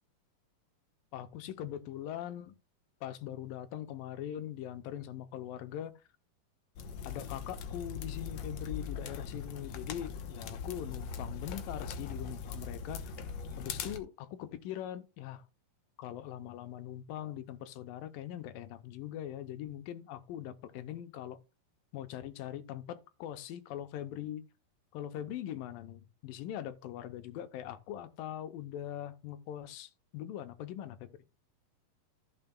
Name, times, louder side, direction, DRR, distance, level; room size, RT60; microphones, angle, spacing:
voice 1, 1.1-2.6 3.0-5.9 7.0-13.1 13.6-15.5 16.0-21.4 21.9-24.4 24.9-31.1, left 11 dB, 85° left, 2.4 m, -42 dB
sound 1, 6.8-14.0, left 5 dB, 65° left, 1.7 m, -41 dB
14.5 x 6.8 x 2.3 m
omnidirectional pair, 4.0 m